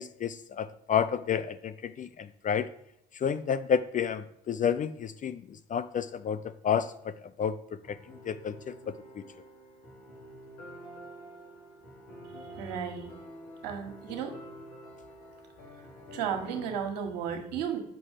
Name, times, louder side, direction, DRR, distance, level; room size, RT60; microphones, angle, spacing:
voice 1, 0.0-2.7 3.1-7.1 7.4-7.6 7.9-9.2, left 7 dB, 40° left, 14 dB, 0.6 m, -30 dB
sound 1, 7.8-16.7, equal, 75° left, 3.9 m, -48 dB
voice 2, 12.5-13.1 13.6-14.4 16.1-17.8, right 7 dB, 80° right, 6 dB, 1.6 m, -34 dB
6.8 x 6.2 x 7.4 m, 0.77 s
hypercardioid pair, 65°, 21 cm